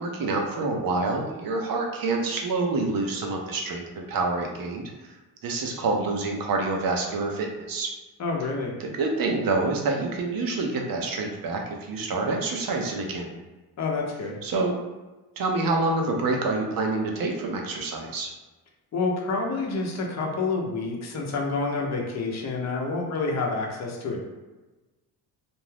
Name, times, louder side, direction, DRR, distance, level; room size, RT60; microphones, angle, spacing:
voice 1, 0.0-4.8 5.4-7.9 8.8-13.3 14.4-14.8 15.4-18.3, right 3 dB, 55° right, 1 dB, 0.7 m, -27 dB
voice 2, 8.2-8.7 13.8-14.4 18.9-24.2, left 3 dB, 40° left, 0 dB, 0.7 m, -28 dB
2.6 x 2.2 x 3.2 m, 1.2 s
cardioid pair, 80°, 42 cm